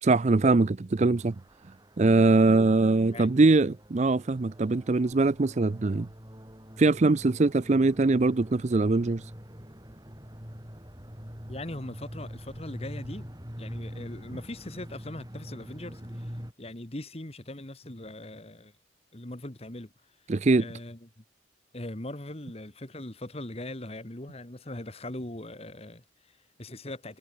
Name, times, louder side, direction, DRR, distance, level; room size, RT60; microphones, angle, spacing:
voice 1, 0.0-1.3 2.0-6.1 6.8-9.3 20.3-20.6, right 3 dB, 40° right, 0.5 m, -22 dB
sound 1, 1.2-16.5, equal, 20° right, 7.7 m, -44 dB
voice 2, 11.5-13.3 13.6-16.3 16.6-18.7 19.1-19.9 20.6-21.2 21.7-27.2, left 1 dB, 35° left, 1.8 m, -40 dB
head